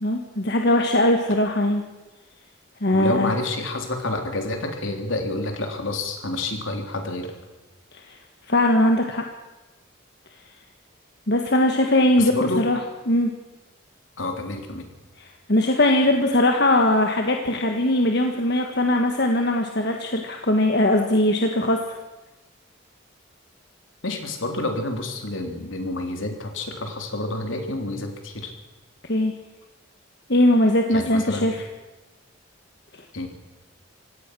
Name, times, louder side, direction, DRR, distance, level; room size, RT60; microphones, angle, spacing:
voice 1, 0.0-1.8 2.8-3.3 8.1-8.2 8.5-9.2 11.3-12.8 13.1-13.3 15.5-21.8 29.0-29.3 30.3-31.6, left 1 dB, 55° left, 3 dB, 1.6 m, -20 dB
voice 2, 2.9-7.3 12.2-12.6 14.2-14.9 24.0-28.5 30.9-31.5 33.1-33.3, left 2 dB, 75° left, 4 dB, 3.5 m, -28 dB
26.0 x 17.0 x 6.3 m, 1.1 s
head